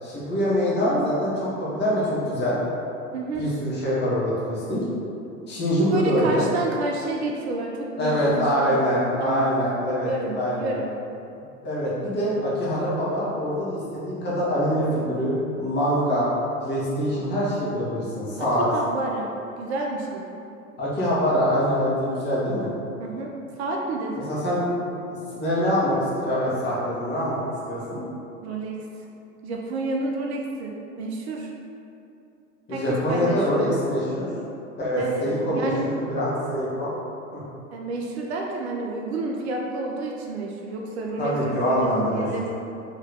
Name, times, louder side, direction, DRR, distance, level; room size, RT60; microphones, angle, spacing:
voice 1, 0.0-2.6 3.3-4.8 5.5-6.5 8.0-10.7 11.6-16.3 16.6-18.7 20.8-22.7 24.3-24.7 25.3-27.4 27.7-28.0 32.7-34.3 34.8-37.0 37.3-37.4 41.2-42.3, equal, 25° left, -8 dB, 1.1 m, -24 dB
voice 2, 5.9-8.8 9.2-9.5 10.1-10.9 18.4-20.5 23.0-24.3 28.4-28.9 29.4-31.5 32.7-33.8 35.0-35.9 37.7-42.5, right 2 dB, 55° right, -1 dB, 0.5 m, -30 dB
2.8 x 2.7 x 3.5 m, 2.7 s
figure-of-eight pair, 85°, 40 cm